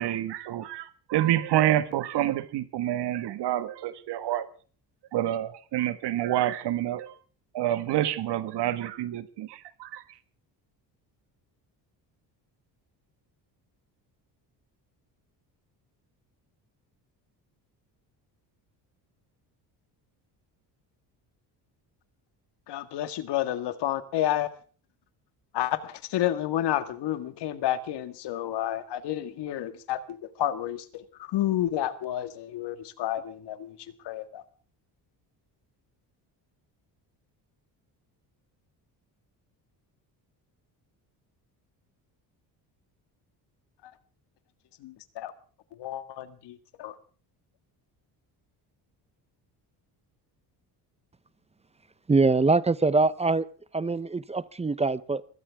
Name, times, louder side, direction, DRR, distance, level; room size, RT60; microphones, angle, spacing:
voice 1, 0.0-4.5 5.1-7.1 7.5-10.0, right 13 dB, 70° right, 12 dB, 1.8 m, -28 dB
voice 2, 22.7-24.5 25.5-33.8 34.0-34.4 43.8-43.9 44.8-45.3 45.7-47.0, left 12 dB, 75° left, 12 dB, 1.8 m, -30 dB
voice 3, 52.1-53.4 53.7-55.2, right 3 dB, 15° right, 17 dB, 0.7 m, -23 dB
22.5 x 17.0 x 3.6 m, 0.41 s
cardioid pair, 125°, 42 cm